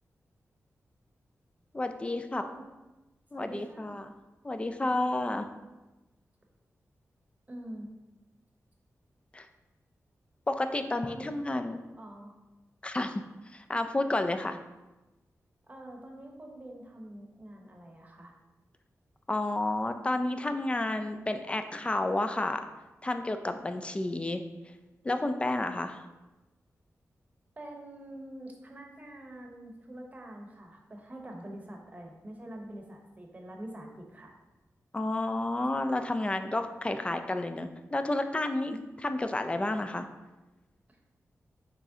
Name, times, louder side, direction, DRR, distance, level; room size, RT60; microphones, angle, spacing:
voice 1, 1.7-2.4 3.3-4.1 4.4-5.5 9.3-9.5 10.5-11.8 12.8-13.2 13.5-14.6 19.3-22.6 23.0-24.4 25.0-26.0 34.9-38.7 39.0-40.0, left 2 dB, 20° left, 8 dB, 0.3 m, -31 dB
voice 2, 3.3-4.1 7.5-7.9 11.0-11.3 12.0-12.4 15.7-18.3 27.6-34.3 38.6-38.8, right 1 dB, 30° right, 1 dB, 0.9 m, -45 dB
6.0 x 3.1 x 2.7 m, 1.1 s
wide cardioid pair, 90°, 6 cm